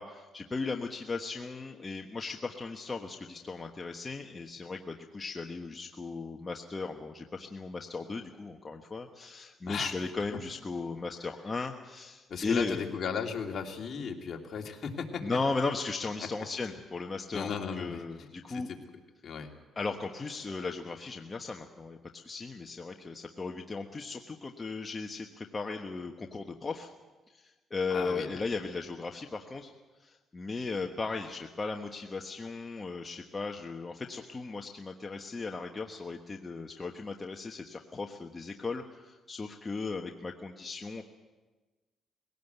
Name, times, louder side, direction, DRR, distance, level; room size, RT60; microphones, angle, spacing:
voice 1, 0.0-12.8 15.2-18.7 19.8-26.9 27.3-29.7 30.0-41.0, left 3 dB, 30° left, 3 dB, 1.3 m, -37 dB
voice 2, 12.3-15.4 16.2-16.3 17.3-18.8 19.2-19.5 27.9-28.4, left 6 dB, 55° left, 2 dB, 2.6 m, -36 dB
21.0 x 17.5 x 8.2 m, 1.2 s
cardioid pair, 90°, 0 cm